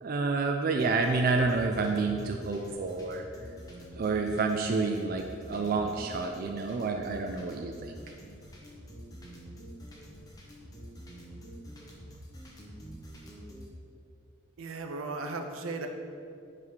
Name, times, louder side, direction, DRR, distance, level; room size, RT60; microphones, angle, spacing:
voice 1, 0.0-3.2 4.0-7.9, right 3 dB, 45° right, 4 dB, 0.3 m, -29 dB
sound 1, 0.8-13.7, equal, 20° left, 0.8 m, -47 dB
voice 2, 14.6-15.9, right 3 dB, 80° right, 5 dB, 0.6 m, -36 dB
5.5 x 4.9 x 4.6 m, 2.4 s
head